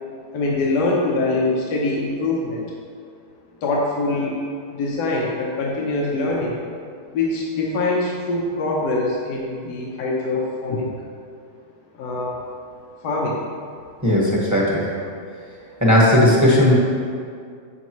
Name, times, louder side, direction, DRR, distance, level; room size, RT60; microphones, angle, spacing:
voice 1, 0.3-2.6 3.6-4.4 4.8-6.6 7.1-10.9 11.9-12.4 13.0-13.4, left 2 dB, 75° left, -3 dB, 1.4 m, -23 dB
voice 2, 14.0-14.9 15.8-16.7, left 1 dB, 10° right, -5 dB, 1.0 m, -16 dB
8.0 x 6.8 x 3.1 m, 2.2 s
omnidirectional pair, 1.8 m